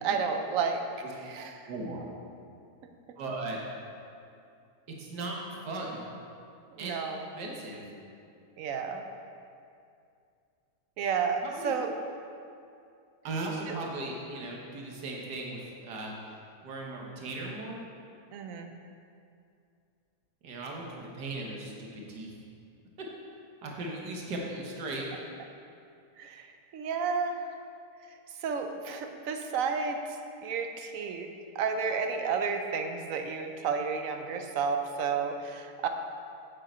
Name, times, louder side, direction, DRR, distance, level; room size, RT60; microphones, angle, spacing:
voice 1, 0.0-1.7 6.7-7.3 8.6-9.1 11.0-11.9 13.7-13.8 18.3-18.7 26.2-27.5 28.4-30.0 30.4-31.3 31.5-35.9, right 5 dB, 65° right, 5 dB, 0.9 m, -31 dB
voice 2, 1.3-2.1 3.2-3.6 5.0-6.0 6.8-7.0 7.4-7.8 11.4-11.7 13.2-16.1 16.6-17.8 20.4-22.3 23.6-25.0, right 2 dB, 85° right, -1 dB, 1.7 m, -37 dB
7.6 x 7.5 x 4.3 m, 2.5 s
omnidirectional pair, 1.7 m